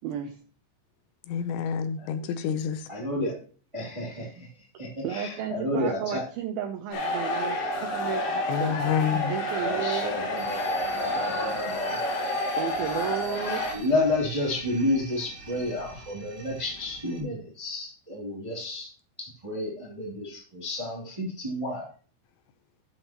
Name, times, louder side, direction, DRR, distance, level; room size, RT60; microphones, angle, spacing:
voice 1, 0.0-0.4 5.0-8.8 9.3-10.2 12.6-13.6, right 9 dB, 85° right, 2.1 m, -33 dB
voice 2, 1.3-2.8 8.5-9.4, left 8 dB, 85° left, 2.8 m, -28 dB
voice 3, 2.9-3.4 3.7-6.3 9.5-12.8 13.4-21.9, left 1 dB, 10° right, 1.6 m, -31 dB
sound 1, 6.9-13.7, left 1 dB, 60° left, 2.9 m, -29 dB
sound 2, 10.4-17.2, right 3 dB, 40° right, 4.5 m, -45 dB
12.0 x 7.5 x 2.9 m
omnidirectional pair, 5.2 m